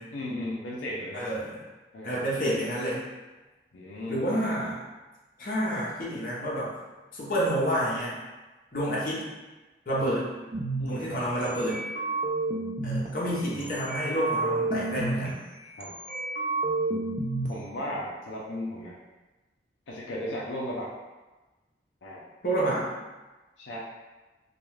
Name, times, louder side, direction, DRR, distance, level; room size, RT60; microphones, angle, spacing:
voice 1, 0.1-1.2 1.9-2.3 3.7-4.2 10.8-11.2 13.4-13.7 15.8-15.9 17.5-19.0 19.9-20.9 22.0-22.2 23.6-23.8, left 1 dB, 85° left, -5 dB, 0.5 m, -35 dB
voice 2, 1.1-1.6 2.0-3.0 4.1-4.8 5.4-6.7 7.1-8.2 8.7-9.2 9.9-10.3 10.9-11.8 12.8-15.4 22.4-22.9, right 1 dB, 45° left, -6 dB, 0.7 m, -29 dB
sound 1, 10.5-10.9 11.4-13.1 13.6-15.3 15.8-17.5, right 3 dB, 40° right, 0.4 m, -30 dB
2.3 x 2.3 x 3.1 m, 1.2 s
head